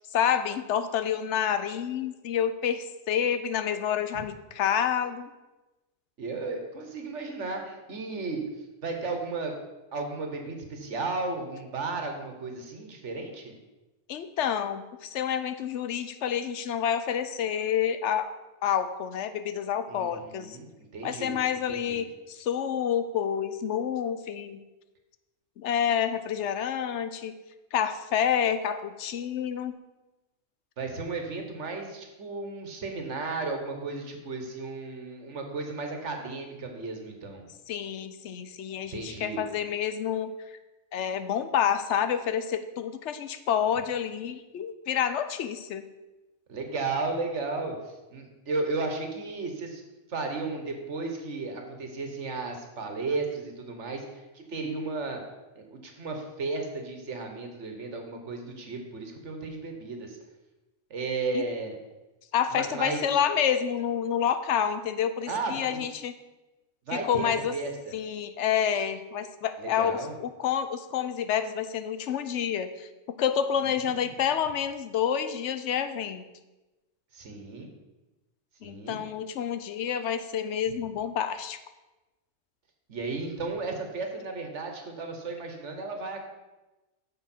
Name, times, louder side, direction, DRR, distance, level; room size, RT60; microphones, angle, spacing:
voice 1, 0.1-5.3 14.1-18.3 18.6-20.6 21.0-24.6 25.6-27.3 27.7-29.8 37.7-40.3 40.9-45.8 61.3-61.4 62.3-66.1 66.9-67.5 67.9-72.9 73.2-76.2 78.6-81.6, left 8 dB, 80° left, 11 dB, 1.0 m, -28 dB
voice 2, 6.2-8.4 8.8-9.5 9.9-13.6 19.9-21.4 21.7-22.1 30.8-37.5 38.9-39.4 46.5-49.8 50.1-55.2 55.6-60.2 60.9-61.8 62.5-63.0 65.3-65.8 66.9-68.0 69.6-70.1 73.8-74.1 77.1-77.7 78.6-79.0 82.9-86.2, right 3 dB, 85° right, 4 dB, 1.6 m, -34 dB
9.9 x 6.4 x 4.4 m, 1.1 s
omnidirectional pair, 1.2 m